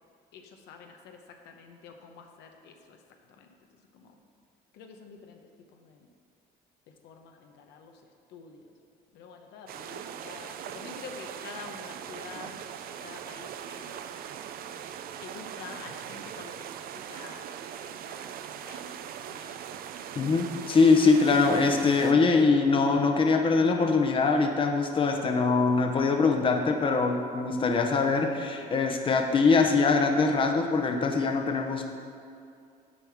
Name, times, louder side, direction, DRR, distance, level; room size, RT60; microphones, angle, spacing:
voice 1, 0.3-1.2 1.4-3.0 3.4-3.5 3.9-4.2 4.7-5.4 5.7-6.1 6.9-7.9 8.3-8.7 9.1-12.6 13.0-14.0 15.2-17.4 17.8-19.7, left 5 dB, 85° left, 3 dB, 0.9 m, -47 dB
sound 1, 9.7-22.1, right 9 dB, 60° right, 0.4 m, -40 dB
voice 2, 20.1-31.9, left 4 dB, 30° left, 4 dB, 0.8 m, -23 dB
7.2 x 4.8 x 7.1 m, 2.4 s
cardioid pair, 110°, 17 cm